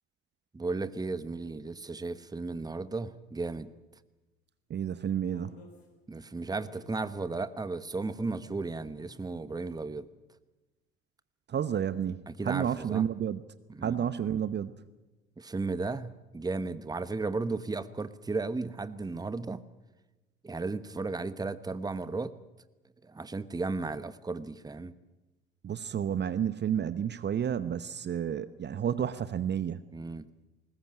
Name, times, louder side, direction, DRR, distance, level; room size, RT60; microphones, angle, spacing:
voice 1, 0.5-3.7 6.1-10.1 12.3-13.1 13.7-14.1 15.4-19.6 20.4-22.3 23.0-24.9 29.9-30.3, right 3 dB, 10° right, 15 dB, 1.1 m, -35 dB
sound 1, 2.0-2.3 3.4-3.6 5.3-5.9 6.5-7.0 8.1-9.3, left 3 dB, 80° left, 3.9 m, -55 dB
voice 2, 4.7-5.6 11.5-13.4 13.8-14.7 25.6-29.8, right 9 dB, 35° right, 15 dB, 0.9 m, -31 dB
21.0 x 19.5 x 8.8 m, 1.1 s
figure-of-eight pair, 60°, 31 cm